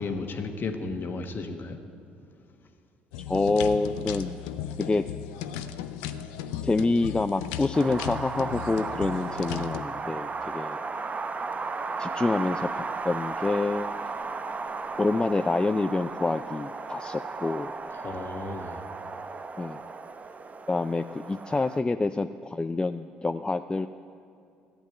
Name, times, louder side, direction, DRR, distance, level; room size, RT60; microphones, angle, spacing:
voice 1, 0.0-1.8 17.9-18.8, left 3 dB, 45° left, 5 dB, 1.5 m, -34 dB
sound 1, 3.1-9.8, left 10 dB, 70° left, 0.6 m, -36 dB
voice 2, 3.3-4.4 4.8-5.0 6.6-10.8 12.0-13.9 15.0-17.7 19.6-19.8 20.7-23.9, left 3 dB, 20° left, 9 dB, 0.4 m, -27 dB
Wind, 7.7-21.8, right 4 dB, 30° right, 0.8 m, -35 dB
14.5 x 8.2 x 9.1 m, 2.5 s
hypercardioid pair, 50°, 5 cm